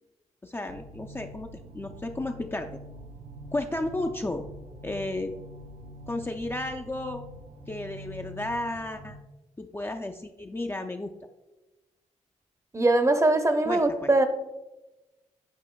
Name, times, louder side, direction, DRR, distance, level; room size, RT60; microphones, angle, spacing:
voice 1, 0.4-2.7 3.5-4.5 4.8-5.4 6.1-7.2 7.7-9.2 9.6-11.1 13.7-14.1, left 2 dB, 15° left, 4 dB, 0.4 m, -33 dB
sound 1, 0.7-9.2, equal, 60° right, 0.8 m, -45 dB
voice 2, 12.7-14.3, right 2 dB, 25° right, 7 dB, 0.7 m, -22 dB
8.4 x 5.0 x 2.2 m, 1.0 s
cardioid pair, 55°, 13 cm